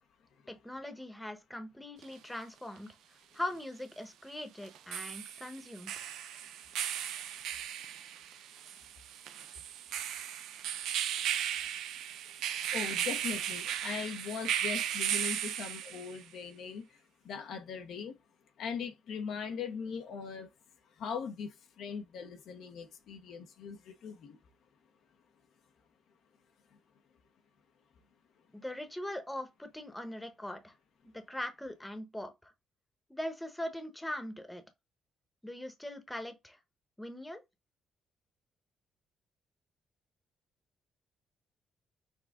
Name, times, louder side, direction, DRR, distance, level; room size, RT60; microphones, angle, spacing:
voice 1, 0.5-5.9 28.5-30.7 31.0-32.5 33.1-34.6 35.4-36.6 37.0-37.4, left 1 dB, 5° left, 1.0 m, -41 dB
sound 1, 2.0-2.1 4.6-16.2, right 10 dB, 85° right, 0.6 m, -36 dB
voice 2, 12.7-17.0 17.2-18.2 18.6-20.5 20.9-24.4 26.7-26.8, left 6 dB, 75° left, 0.9 m, -40 dB
6.3 x 2.3 x 3.7 m
cardioid pair, 90°, 0 cm